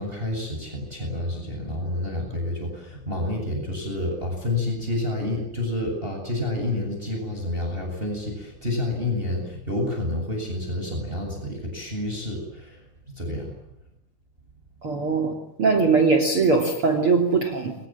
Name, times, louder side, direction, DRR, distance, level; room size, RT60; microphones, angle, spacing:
voice 1, 0.0-13.5, left 1 dB, 10° right, 2 dB, 8.0 m, -29 dB
voice 2, 14.8-17.7, right 4 dB, 35° right, 7 dB, 3.4 m, -21 dB
29.5 x 25.0 x 7.5 m, 0.77 s
omnidirectional pair, 5.0 m